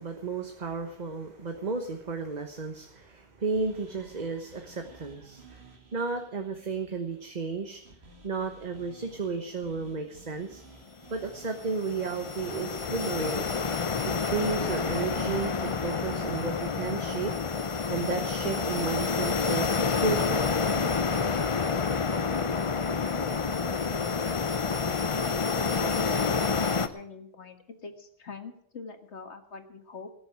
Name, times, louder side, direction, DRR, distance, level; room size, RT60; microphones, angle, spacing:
voice 1, 0.0-5.6 5.9-7.8 8.2-10.6 11.1-13.5 14.1-17.3 17.9-20.7, right 4 dB, 40° right, 4 dB, 1.3 m, -33 dB
sound 1, 0.5-9.8 10.1-10.2 10.5-10.6 11.0-11.1 12.3-19.0, right 2 dB, 5° right, 5.8 m, -54 dB
sound 2, 3.5-17.7, right 2 dB, 65° right, 2.2 m, -56 dB
sound 3, 11.2-26.9, left 5 dB, 35° left, 0.6 m, -28 dB
voice 2, 25.7-30.1, left 4 dB, 75° left, 6 dB, 1.9 m, -43 dB
18.0 x 7.1 x 8.7 m, 0.68 s
omnidirectional pair, 1.1 m